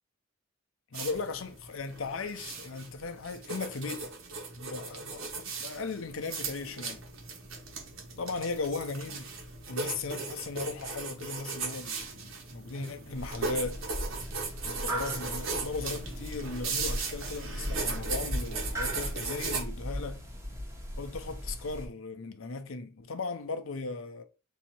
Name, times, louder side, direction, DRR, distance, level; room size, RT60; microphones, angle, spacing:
voice 1, 0.9-4.1 4.6-7.1 8.2-9.3 9.7-13.8 14.6-20.3 21.0-24.2, left 3 dB, 70° left, 0.6 m, -37 dB
sound 1, 0.9-19.6, right 4 dB, 75° right, 1.2 m, -38 dB
sound 2, 13.1-21.9, equal, 15° right, 1.0 m, -38 dB
4.0 x 2.8 x 4.4 m
head